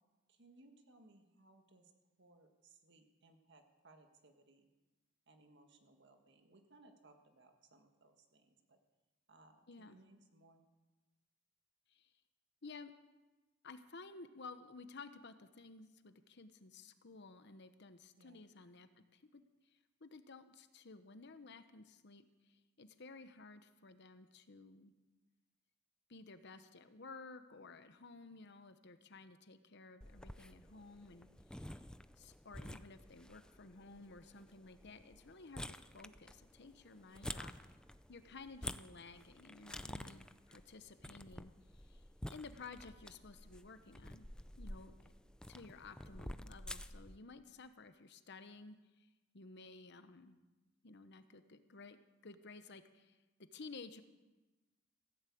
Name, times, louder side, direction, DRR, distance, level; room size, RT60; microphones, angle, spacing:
voice 1, 0.3-1.9 2.2-4.7 5.3-8.8 9.3-10.7 18.2-18.4 28.3-28.6 37.1-37.5 45.2-45.5, right 2 dB, 60° right, 5 dB, 1.8 m, -65 dB
voice 2, 9.7-10.0 11.9-12.1 12.6-12.9 13.6-19.4 19.7-24.9 26.1-31.7 32.2-37.5 38.1-44.3 44.6-44.9 45.5-49.1 49.3-50.4 50.8-54.0, left 3 dB, 55° left, 10 dB, 1.0 m, -55 dB
sound 1, 30.0-47.2, left 1 dB, 5° left, 0.4 m, -50 dB
16.0 x 10.5 x 8.5 m, 1.1 s
head